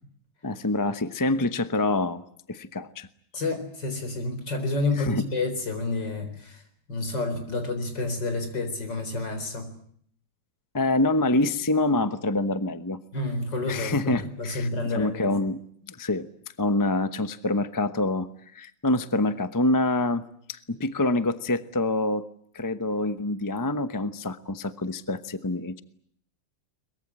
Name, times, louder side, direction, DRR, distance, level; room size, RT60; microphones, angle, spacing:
voice 1, 0.4-3.1 5.0-5.2 10.7-13.0 13.7-15.6 15.9-16.3 16.6-18.3 18.5-22.3 22.5-25.8, left 2 dB, 20° left, 12 dB, 0.6 m, -26 dB
voice 2, 3.3-6.6 6.9-9.7 13.1-15.4, left 2 dB, 65° left, 7 dB, 4.9 m, -29 dB
22.5 x 22.0 x 9.9 m, 0.65 s
omnidirectional pair, 2.1 m